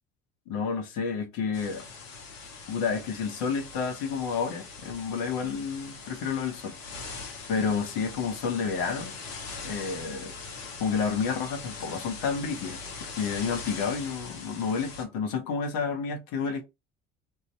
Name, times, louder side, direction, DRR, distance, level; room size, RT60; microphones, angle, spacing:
voice 1, 0.5-1.8 2.7-6.8 7.5-9.1 9.6-10.3 10.8-12.8 13.1-16.6, left 5 dB, 70° left, 1.5 m, -30 dB
sound 1, 1.5-15.0, left 4 dB, 85° left, 1.3 m, -41 dB
3.6 x 2.8 x 4.2 m
hypercardioid pair, 60°, 37 cm